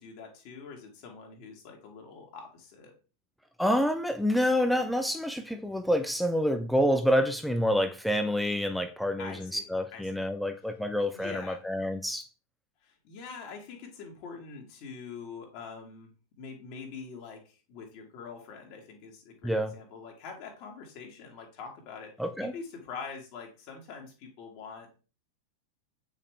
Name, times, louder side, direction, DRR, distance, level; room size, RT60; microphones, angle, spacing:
voice 1, 0.0-2.9 9.2-10.2 11.1-11.6 12.8-16.1 16.4-22.1 22.4-25.0, left 5 dB, 45° left, 0 dB, 2.0 m, -44 dB
voice 2, 3.6-12.3 19.4-19.7 22.2-22.5, equal, ahead, 8 dB, 0.6 m, -27 dB
8.5 x 5.3 x 3.3 m, 0.34 s
figure-of-eight pair, 90°, 0 cm